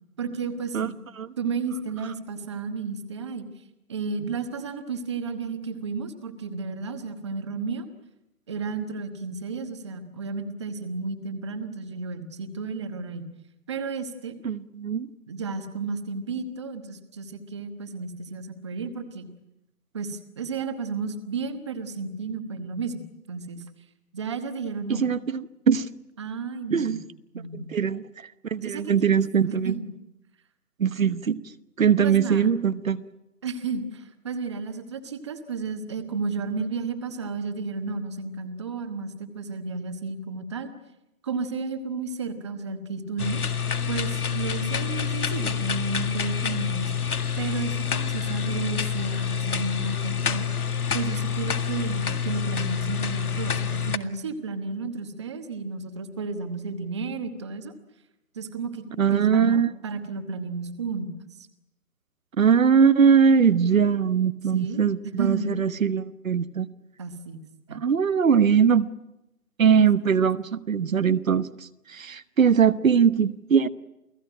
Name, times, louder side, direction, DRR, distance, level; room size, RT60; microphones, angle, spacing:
voice 1, 0.2-0.9 1.4-3.5 3.9-7.9 8.5-13.3 13.7-14.4 15.3-19.3 19.9-23.6 24.1-25.1 26.2-27.0 27.3-27.7 28.6-29.2 29.4-29.9 32.0-32.5 33.4-40.7 41.2-43.4 43.9-46.9 47.4-50.5 50.9-57.7 58.3-58.8 59.1-61.5 64.5-64.8 65.2-65.5 67.0-67.4 67.7-67.8 69.7-69.8, right 4 dB, 20° right, 9 dB, 1.2 m, -32 dB
voice 2, 14.4-15.1 24.9-25.9 26.7-27.0 27.5-28.0 28.5-29.8 30.8-31.4 31.8-33.0 59.0-59.7 62.4-66.7 67.7-68.9 69.6-71.5 71.9-73.7, right 7 dB, 60° right, 13 dB, 1.1 m, -21 dB
sound 1, 43.2-54.0, left 7 dB, 70° left, 2.0 m, -27 dB
29.0 x 18.0 x 9.9 m, 0.90 s
hypercardioid pair, 170°, 46 cm